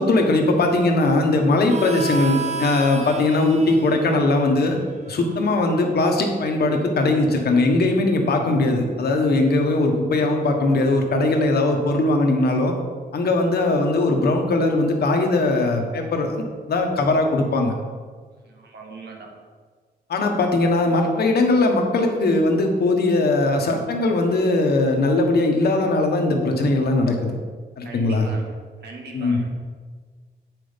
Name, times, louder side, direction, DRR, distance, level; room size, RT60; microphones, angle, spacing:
voice 1, 0.0-4.8 5.1-12.7 13.1-17.7 20.1-27.3 27.8-28.3 29.1-29.4, left 2 dB, 70° left, 3 dB, 1.4 m, -20 dB
Harmonica, 1.7-6.9, right 3 dB, 40° right, 1.0 m, -33 dB
voice 2, 18.4-19.3 27.8-28.5 28.8-29.5, right 4 dB, 90° right, 0 dB, 1.7 m, -40 dB
8.4 x 6.2 x 5.2 m, 1.6 s
wide cardioid pair, 115°, 17 cm